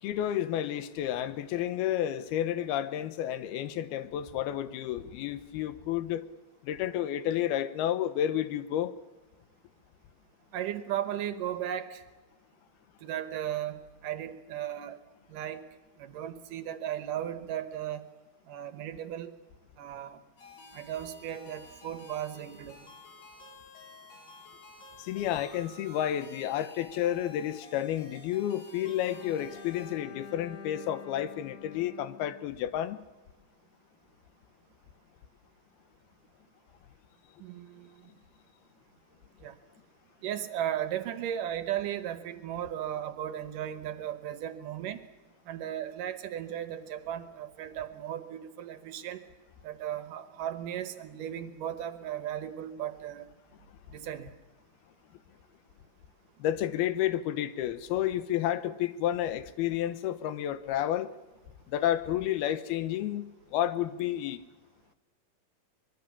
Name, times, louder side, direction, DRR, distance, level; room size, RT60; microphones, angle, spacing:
voice 1, 0.0-6.3 6.6-8.9 25.0-33.0 56.4-61.1 61.7-64.4, left 11 dB, 85° left, 2.9 m, -31 dB
voice 2, 10.5-12.0 13.0-15.0 15.3-15.6 16.0-18.1 18.5-19.3 19.8-20.2 20.7-22.8 37.4-37.9 39.4-39.6 40.2-45.1 45.5-49.2 49.6-53.3 53.9-54.3, right 10 dB, 70° right, 2.5 m, -36 dB
sound 1, 20.4-29.9, left 3 dB, 65° left, 7.1 m, -51 dB
Bowed string instrument, 29.0-33.1, left 6 dB, 45° left, 1.8 m, -48 dB
24.5 x 21.5 x 7.2 m
omnidirectional pair, 4.4 m